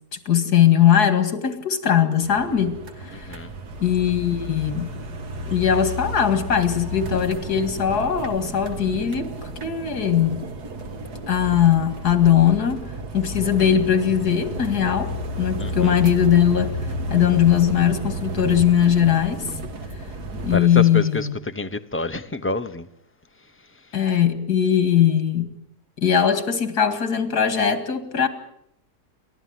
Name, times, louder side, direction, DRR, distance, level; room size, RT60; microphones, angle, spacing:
voice 1, 0.3-2.8 3.0-3.4 3.8-4.9 5.5-10.4 11.3-16.8 17.1-19.5 20.4-21.4 23.9-25.6 26.0-28.3, left 9 dB, 80° left, 2.6 m, -20 dB
sound 1, 2.2-20.6, equal, 80° right, 2.3 m, -32 dB
voice 2, 20.5-21.3 21.5-22.8, left 2 dB, 10° left, 0.7 m, -27 dB
29.0 x 13.0 x 9.5 m
omnidirectional pair, 1.7 m